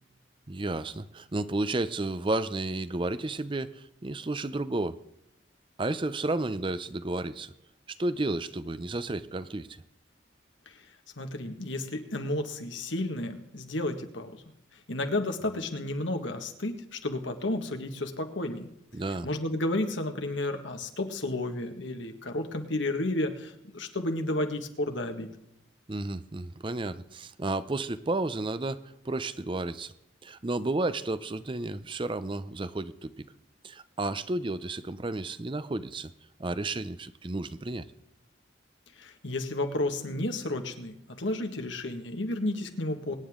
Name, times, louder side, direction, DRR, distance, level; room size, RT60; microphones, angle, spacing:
voice 1, 0.5-5.0 5.8-7.5 8.0-9.8 18.9-19.3 25.9-29.9 30.2-33.1 33.6-36.1 36.4-37.9, right 2 dB, 25° right, 14 dB, 0.5 m, -32 dB
voice 2, 11.2-14.4 14.9-18.7 19.2-25.3 39.0-43.2, left 1 dB, 80° left, 5 dB, 1.8 m, -32 dB
24.0 x 9.9 x 3.7 m, 0.82 s
head